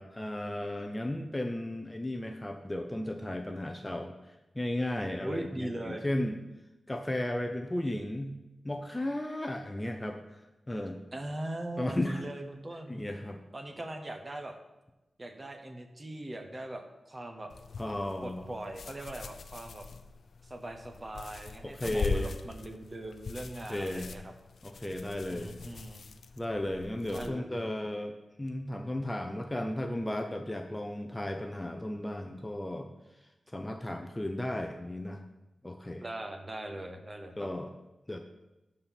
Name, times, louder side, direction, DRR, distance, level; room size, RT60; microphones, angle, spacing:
voice 1, 0.0-6.4 6.9-8.4 8.6-10.2 10.7-11.0 11.8-12.2 12.9-13.4 17.8-18.5 21.6-22.4 23.7-24.1 24.6-25.5 26.4-32.9 33.5-35.2 35.6-36.0 37.4-37.7 38.1-38.2, left 1 dB, 10° left, 5 dB, 0.6 m, -35 dB
voice 2, 5.2-6.0 11.1-13.0 13.5-14.6 15.2-17.5 18.2-19.9 20.4-24.3 25.3-26.1 27.1-27.7 36.0-37.5, right 1 dB, 25° right, 6 dB, 1.0 m, -40 dB
sound 1, 17.5-27.3, left 4 dB, 70° left, 0.6 m, -41 dB
11.5 x 4.3 x 7.0 m, 1.0 s
wide cardioid pair, 165°, 0 cm